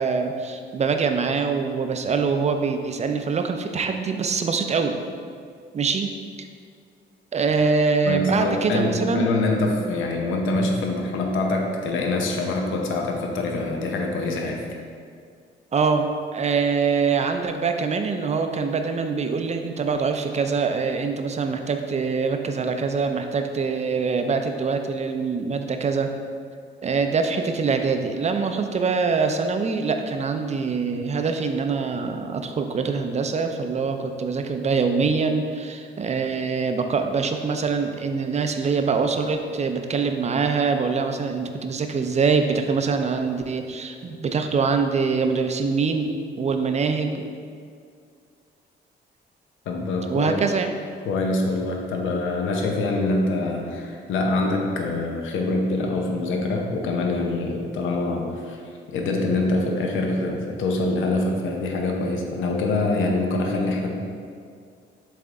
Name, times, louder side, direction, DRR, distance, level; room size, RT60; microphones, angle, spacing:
voice 1, 0.0-5.0 5.7-6.1 6.4-6.5 7.3-9.4 15.7-26.1 26.8-47.2 50.1-50.7, right 5 dB, 35° right, 6 dB, 0.5 m, -24 dB
voice 2, 8.0-14.6 49.7-50.3 51.0-58.6 58.9-64.0, left 2 dB, 80° left, 1 dB, 0.8 m, -25 dB
7.7 x 3.4 x 3.7 m, 2.2 s
cardioid pair, 90°, 20 cm